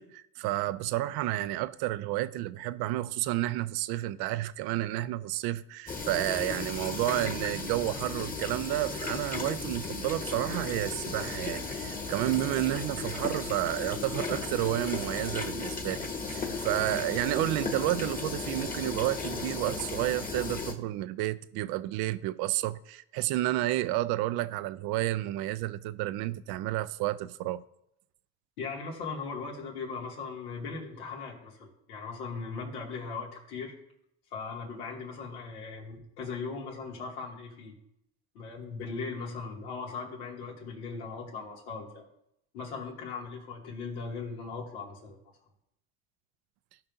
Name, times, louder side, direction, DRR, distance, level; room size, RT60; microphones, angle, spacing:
voice 1, 0.0-27.6, right 16 dB, 60° right, 0.6 m, -31 dB
sound 1, 5.9-20.7, left 4 dB, 20° left, 1.5 m, -35 dB
voice 2, 28.6-33.7 34.3-37.7 38.3-42.0 42.5-45.2, left 4 dB, 80° left, 2.8 m, -39 dB
16.5 x 5.5 x 2.7 m
hypercardioid pair, 80°, 44 cm